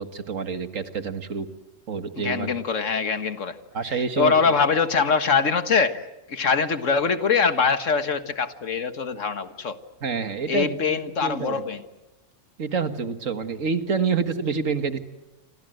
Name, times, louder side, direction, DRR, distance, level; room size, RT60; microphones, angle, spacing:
voice 1, 0.0-1.5 1.9-2.5 3.7-4.3 10.0-11.6 12.6-15.0, right 5 dB, 80° right, 9 dB, 2.1 m, -27 dB
voice 2, 2.2-3.6 3.8-9.8 10.5-11.8, left 5 dB, 75° left, 10 dB, 1.9 m, -23 dB
28.0 x 26.0 x 7.9 m, 1.1 s
omnidirectional pair, 1.3 m